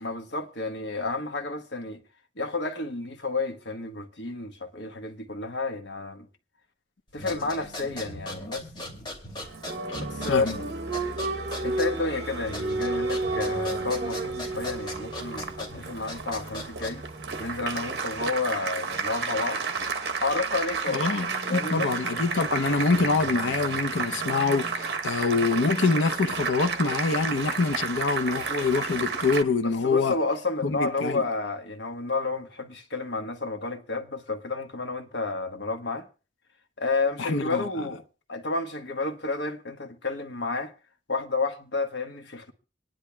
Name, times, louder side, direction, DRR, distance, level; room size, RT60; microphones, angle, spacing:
voice 1, 0.0-2.0 2.4-6.3 7.1-8.6 10.0-10.5 11.6-17.0 17.4-19.6 20.2-21.1 21.5-21.9 29.6-36.1 36.8-38.0 38.3-40.7 41.1-42.5, left 3 dB, 70° left, 1.3 m, -31 dB
sound 1, 7.1-17.2, left 1 dB, 25° left, 2.6 m, -40 dB
Applause, 9.4-29.4, right 4 dB, 55° right, 1.0 m, -31 dB
voice 2, 20.9-30.1 30.6-31.2 37.2-37.7, left 4 dB, 90° left, 0.7 m, -25 dB
26.0 x 10.5 x 2.3 m
head